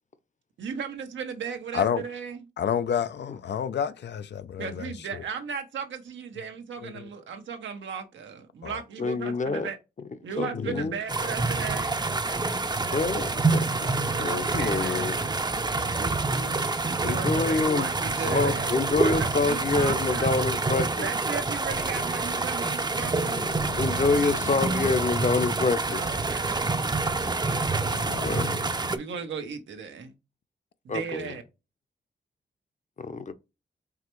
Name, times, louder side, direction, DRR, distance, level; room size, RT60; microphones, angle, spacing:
voice 1, 0.6-2.4 4.6-9.8 10.2-12.0 14.1-15.4 15.8-16.6 17.0-20.4 21.0-23.5 25.9-26.8 27.1-27.9 28.9-30.1 30.8-31.4, right 6 dB, 90° right, 1.0 m, -36 dB
voice 2, 2.6-4.9 6.8-7.0 8.6-8.7 10.6-10.9 18.3-18.4 23.1-24.7 27.9-28.7, left 8 dB, 70° left, 0.5 m, -31 dB
voice 3, 9.0-9.7 10.4-11.0 12.9-15.2 17.0-17.9 18.3-21.1 23.8-26.1 28.2-28.5 30.9-31.3 33.0-33.3, left 4 dB, 40° left, 0.8 m, -27 dB
sound 1, 11.1-29.0, right 3 dB, 20° right, 0.6 m, -27 dB
4.8 x 3.3 x 3.1 m
cardioid pair, 60°, 19 cm